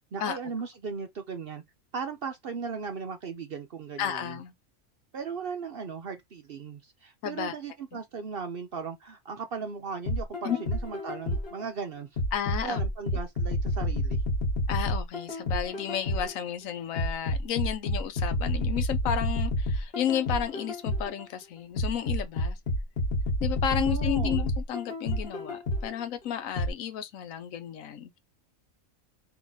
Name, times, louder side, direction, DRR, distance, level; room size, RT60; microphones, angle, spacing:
voice 1, 0.1-1.6 1.9-4.4 5.1-12.1 12.6-14.2 23.8-24.5, right 5 dB, 55° right, 0.7 m, -37 dB
voice 2, 4.0-4.5 7.2-7.6 7.9-8.0 10.4-10.6 12.3-12.8 14.7-22.6 23.4-28.2, left 9 dB, 75° left, 1.1 m, -32 dB
sound 1, 10.1-11.6 12.2-16.4 17.0-21.2 21.8-26.0 26.6-26.7, left 1 dB, 45° left, 1.5 m, -29 dB
3.6 x 3.0 x 3.9 m
omnidirectional pair, 1.4 m